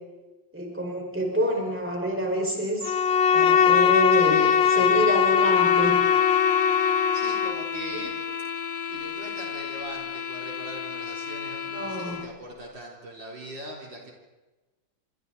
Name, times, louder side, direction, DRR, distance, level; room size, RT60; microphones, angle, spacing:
voice 1, 0.5-2.9 3.3-4.5 4.8-6.0 7.9-8.0 11.7-12.3, right 1 dB, 5° right, -1 dB, 5.0 m, -27 dB
Bowed string instrument, 2.8-7.6, left 8 dB, 75° left, 1.5 m, -20 dB
voice 2, 4.1-5.3 7.1-8.1 8.9-14.1, right 1 dB, 65° right, -2 dB, 4.5 m, -40 dB
sound 1, 5.3-12.4, left 7 dB, 40° left, 0.7 m, -33 dB
27.0 x 25.5 x 4.1 m, 1.2 s
omnidirectional pair, 2.2 m